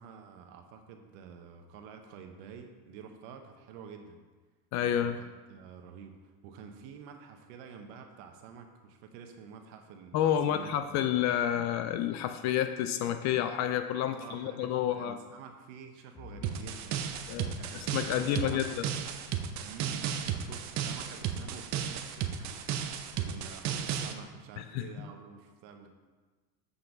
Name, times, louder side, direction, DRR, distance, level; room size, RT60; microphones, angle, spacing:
voice 1, 0.0-4.2 5.0-10.9 14.1-17.1 17.5-18.9 19.6-25.9, right 6 dB, 60° right, 5 dB, 1.2 m, -49 dB
voice 2, 4.7-5.2 10.1-15.2 17.3-18.9 24.6-25.1, left 10 dB, 40° left, 9 dB, 0.4 m, -30 dB
sound 1, 16.1-19.2, left 3 dB, 15° left, 1.2 m, -53 dB
sound 2, 16.4-24.1, right 9 dB, 35° right, 0.7 m, -34 dB
8.1 x 5.6 x 3.9 m, 1.3 s
supercardioid pair, 120°, 47 cm